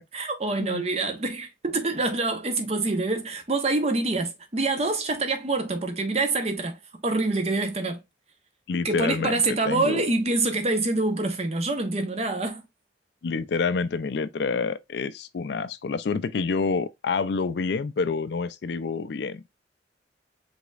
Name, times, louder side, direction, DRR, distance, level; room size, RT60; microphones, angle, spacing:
voice 1, 0.1-8.0 8.8-12.6, right 2 dB, 35° right, 0.9 m, -26 dB
voice 2, 8.7-10.0 13.2-19.4, left 4 dB, 65° left, 0.4 m, -28 dB
5.0 x 3.5 x 2.3 m
head